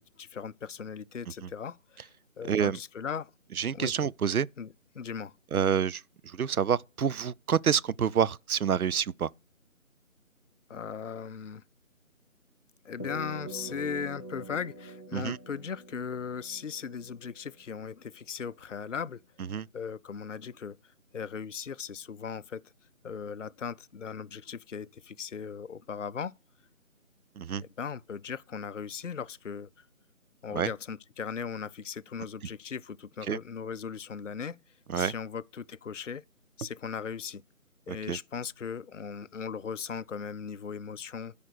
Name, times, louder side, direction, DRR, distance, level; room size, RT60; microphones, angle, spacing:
voice 1, 0.0-3.3 3.7-3.9 4.6-5.3 10.7-11.6 12.8-19.2 19.7-20.8 21.1-22.6 23.0-26.3 27.6-29.9 30.4-34.6 34.9-36.2 36.6-37.4 37.9-41.3, left 6 dB, 60° left, 0.5 m, -38 dB
voice 2, 2.5-2.8 3.6-4.5 5.5-9.3 15.1-15.4 19.5-19.7 27.4-27.6 30.5-30.7 33.3-33.4 34.9-35.1 37.9-38.2, right 7 dB, 85° right, 0.5 m, -28 dB
sound 1, 13.0-17.6, right 1 dB, 15° left, 0.9 m, -44 dB
12.5 x 5.1 x 6.5 m
figure-of-eight pair, 160°, 42 cm